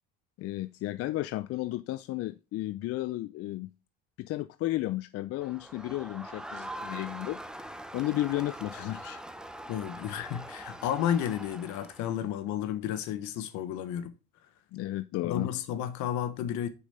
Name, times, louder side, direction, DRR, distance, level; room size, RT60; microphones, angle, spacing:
voice 1, 0.4-3.7 4.2-7.4 7.9-9.2 14.7-15.5, left 16 dB, 50° left, 0.4 m, -33 dB
Crowd, 5.4-12.2, right 1 dB, ahead, 0.7 m, -43 dB
voice 2, 9.7-14.1 15.2-16.7, left 10 dB, 65° left, 1.0 m, -32 dB
6.6 x 5.1 x 4.1 m
supercardioid pair, 90°, 31 cm